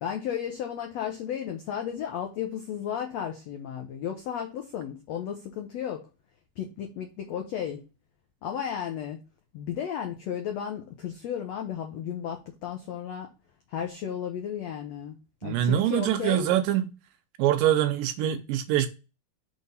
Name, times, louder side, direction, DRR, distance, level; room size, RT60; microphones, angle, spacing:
voice 1, 0.0-6.1 6.6-7.8 8.4-9.2 9.5-13.3 13.7-16.5, left 9 dB, 85° left, 1.5 m, -34 dB
voice 2, 15.4-16.9 17.4-18.9, right 11 dB, 80° right, 2.1 m, -24 dB
6.1 x 3.6 x 5.4 m
omnidirectional pair, 4.2 m